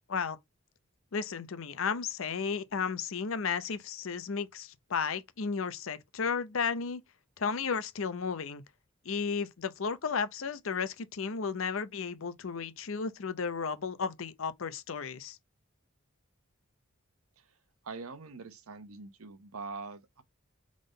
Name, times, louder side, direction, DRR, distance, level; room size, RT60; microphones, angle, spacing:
voice 1, 1.1-7.0 7.4-8.6 9.1-15.4, left 5 dB, 70° left, 0.6 m, -33 dB
voice 2, 17.8-20.2, right 4 dB, 85° right, 0.9 m, -43 dB
3.8 x 3.6 x 3.8 m
head